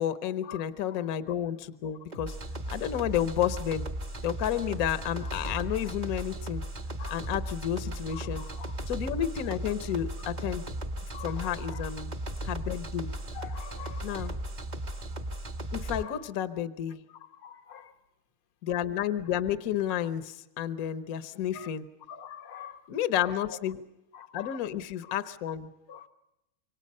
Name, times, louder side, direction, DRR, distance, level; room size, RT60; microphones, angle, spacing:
voice 1, 0.0-2.4 2.7-3.9 4.2-6.6 7.1-8.4 8.9-10.7 11.2-12.1 12.4-13.1 14.0-14.3 15.7-17.0 18.6-21.9 22.9-23.8 24.3-25.7, left 10 dB, 55° left, 11 dB, 1.2 m, -31 dB
sound 1, 2.1-16.0, right 1 dB, 25° right, 1.1 m, -36 dB
voice 2, 5.0-5.3 7.0-7.3 7.8-8.8 11.1-11.8 13.3-14.4 15.0-15.1 16.0-16.3 17.1-17.9 21.5-21.7 22.1-22.9 23.1-23.6 24.1-24.7 25.0-25.2 25.9-26.1, left 9 dB, 85° left, 6 dB, 2.1 m, -46 dB
26.5 x 24.0 x 5.4 m, 0.90 s
omnidirectional pair, 2.3 m